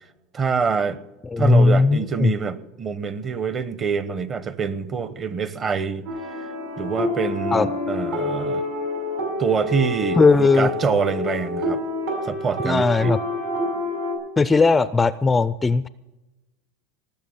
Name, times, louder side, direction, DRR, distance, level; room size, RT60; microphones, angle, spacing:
voice 1, 0.3-1.0 1.4-6.1 6.8-8.7 9.4-11.8 12.2-13.1, right 5 dB, 30° right, 15 dB, 0.8 m, -25 dB
voice 2, 1.3-2.3 7.5-7.7 10.2-10.7 12.6-13.2 14.4-15.9, left 3 dB, 15° left, 15 dB, 0.4 m, -17 dB
sound 1, 6.1-14.2, left 1 dB, 80° right, 6.2 m, -27 dB
19.0 x 7.3 x 7.1 m, 1.0 s
supercardioid pair, 130°, 0 cm